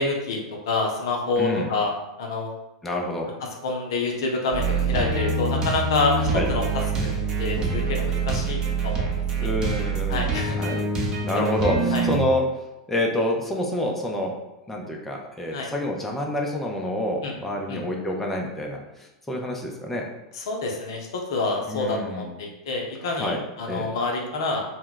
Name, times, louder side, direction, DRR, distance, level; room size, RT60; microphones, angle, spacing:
voice 1, 0.0-1.9 2.2-2.5 3.6-6.2 6.5-6.6 7.0-7.1 7.4-9.1 9.4-9.5 10.1-10.6 11.3-11.5 11.9-12.0 15.5-15.7 17.2-17.3 17.7-17.8 20.3-24.6, left 3 dB, 65° left, 0 dB, 0.5 m, -27 dB
voice 2, 1.4-1.7 2.8-3.3 6.3-6.5 9.4-10.8 11.2-12.4 12.9-14.4 14.7-20.1 21.7-22.4 23.1-23.9, left 1 dB, 10° left, 0 dB, 0.4 m, -28 dB
sound 1, 4.5-12.2, right 4 dB, 30° right, 0.7 m, -25 dB
2.2 x 2.0 x 3.8 m, 0.94 s
figure-of-eight pair, 90°, 3 cm